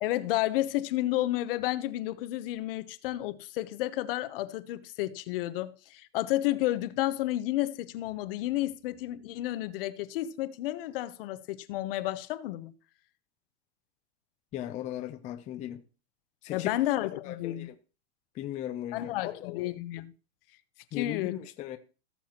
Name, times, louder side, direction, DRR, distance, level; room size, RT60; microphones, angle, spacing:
voice 1, 0.0-12.7 16.5-17.7 18.9-20.1 20.9-21.4, left 15 dB, 55° left, 1.0 m, -31 dB
voice 2, 14.5-15.8 16.4-16.7 17.2-17.7 18.4-19.7 20.9-21.8, left 12 dB, 20° left, 0.5 m, -37 dB
17.5 x 7.0 x 2.9 m
hypercardioid pair, 140°, 34 cm